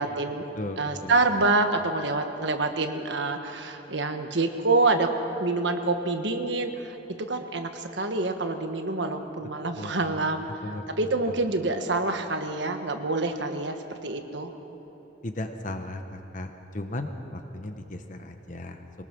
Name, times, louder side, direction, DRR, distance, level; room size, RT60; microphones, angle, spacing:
voice 1, 0.0-0.4 0.8-5.1 5.4-10.5 11.0-13.8 14.0-14.5, right 3 dB, 65° right, 6 dB, 1.4 m, -26 dB
voice 2, 0.6-1.2 9.8-10.2 10.6-10.9 11.3-11.4 15.2-16.0 16.3-18.8, left 1 dB, 40° left, 6 dB, 1.0 m, -36 dB
22.0 x 19.5 x 6.1 m, 3.0 s
head